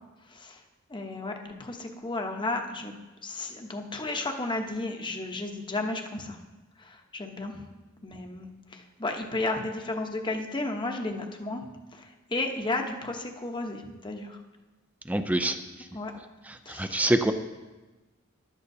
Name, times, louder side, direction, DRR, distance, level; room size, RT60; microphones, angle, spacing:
voice 1, 0.3-0.6 0.9-2.9 3.2-6.4 6.8-7.6 8.0-11.6 11.9-14.4 15.9-16.1 16.6-17.1, left 2 dB, 20° left, 3 dB, 0.9 m, -33 dB
voice 2, 15.1-15.6 16.7-17.3, right 1 dB, 5° right, 8 dB, 0.4 m, -25 dB
14.5 x 11.5 x 2.7 m, 1.2 s
head